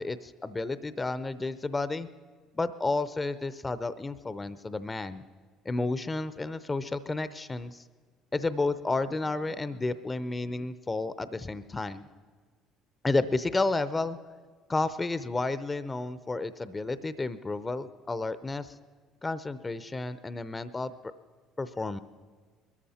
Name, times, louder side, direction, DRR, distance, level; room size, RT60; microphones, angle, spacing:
voice 1, 0.0-2.1 2.5-5.2 5.6-7.8 8.3-12.1 13.0-14.2 14.7-18.7 19.2-20.9 21.6-22.0, left 3 dB, 25° left, 14 dB, 0.6 m, -31 dB
22.0 x 13.5 x 4.3 m, 1.5 s
hypercardioid pair, 65°, 0 cm